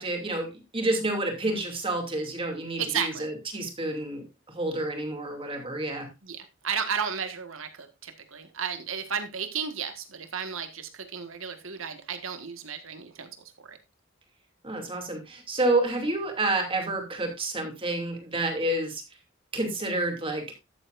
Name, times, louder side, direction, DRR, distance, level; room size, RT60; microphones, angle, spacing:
voice 1, 0.0-6.1 14.6-19.0 19.5-20.4, right 2 dB, 25° right, 3 dB, 2.7 m, -29 dB
voice 2, 2.8-3.3 6.2-6.4 6.6-13.3 13.6-13.8, right 6 dB, 75° right, 8 dB, 1.6 m, -33 dB
13.0 x 8.0 x 2.5 m, 0.23 s
head